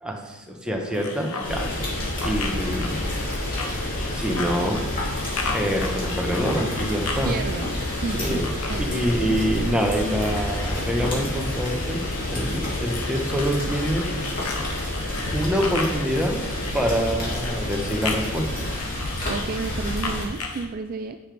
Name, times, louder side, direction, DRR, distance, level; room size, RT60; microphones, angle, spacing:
voice 1, 0.0-1.8 2.2-3.1 4.1-4.8 5.5-7.3 8.2-8.5 8.8-14.1 15.3-16.4 16.7-18.5, equal, 5° right, 1 dB, 1.0 m, -26 dB
sound 1, 0.6-18.8, left 2 dB, 60° left, 0.8 m, -37 dB
sound 2, 0.9-20.7, left 4 dB, 80° left, 1.1 m, -36 dB
Rain, 1.4-20.2, left 1 dB, 40° left, 2.6 m, -29 dB
voice 2, 7.2-7.7 8.0-9.1 19.3-21.2, right 4 dB, 40° right, 7 dB, 0.3 m, -31 dB
9.7 x 6.8 x 3.4 m, 1.1 s
head